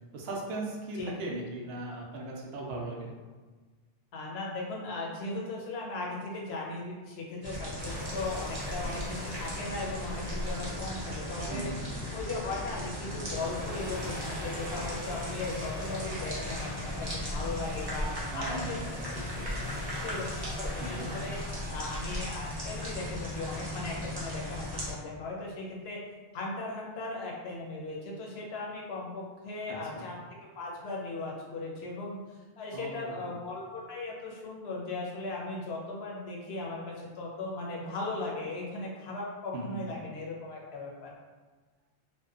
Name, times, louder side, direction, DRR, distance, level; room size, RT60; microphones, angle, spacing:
voice 1, 0.1-3.1 11.5-11.8 18.3-19.8 20.8-21.2 29.7-30.1 32.7-33.3 39.5-39.8, right 2 dB, 80° right, -1 dB, 0.8 m, -38 dB
voice 2, 4.1-11.7 12.1-18.8 19.9-21.4 21.7-26.0 26.3-30.2 30.6-32.2 32.6-41.1, left 2 dB, 80° left, -2 dB, 0.9 m, -37 dB
sound 1, 7.4-24.9, left 1 dB, 30° right, 0.5 m, -37 dB
sound 2, 7.8-24.9, equal, 30° left, 0.7 m, -44 dB
2.6 x 2.2 x 2.3 m, 1.3 s
omnidirectional pair, 1.0 m